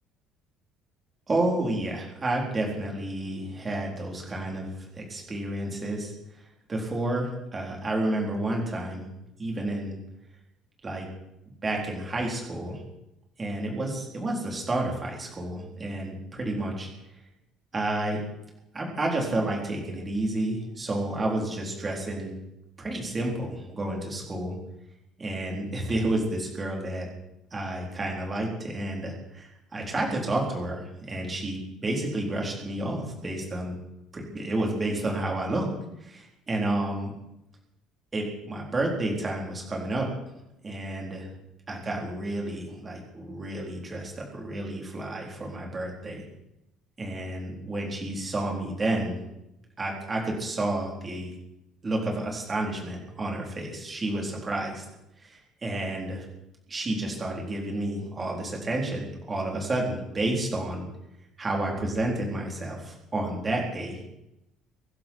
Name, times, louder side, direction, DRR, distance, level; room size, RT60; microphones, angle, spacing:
voice 1, 1.3-6.1 6.7-9.1 9.4-10.0 10.8-11.1 11.6-12.8 13.4-16.9 17.7-18.2 18.7-22.4 22.8-24.6 25.2-27.1 27.5-33.8 34.1-35.7 36.0-37.1 38.1-40.1 40.6-41.3 41.7-46.3 47.0-49.2 49.8-51.3 51.8-54.8 55.2-56.2 56.7-60.9 61.4-64.0, right 1 dB, 20° right, -1 dB, 4.1 m, -30 dB
24.0 x 12.0 x 4.7 m, 0.87 s
cardioid pair, 155°, 0 cm